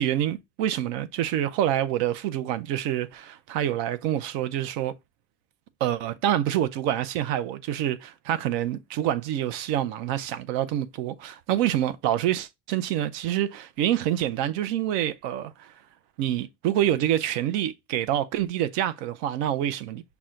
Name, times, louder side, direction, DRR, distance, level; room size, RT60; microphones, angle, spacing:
voice 1, 0.0-4.9 5.8-15.7 16.2-20.2, right 11 dB, 65° right, 0.7 m, -27 dB
6.0 x 2.4 x 3.7 m
cardioid pair, 165°, 47 cm